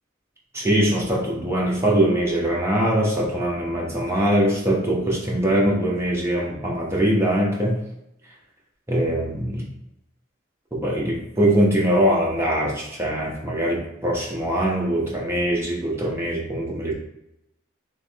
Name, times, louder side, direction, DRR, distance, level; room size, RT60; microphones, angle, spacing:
voice 1, 0.5-7.8 8.9-9.7 10.7-16.9, right 1 dB, 15° right, -3 dB, 0.7 m, -22 dB
3.2 x 3.1 x 3.2 m, 0.83 s
head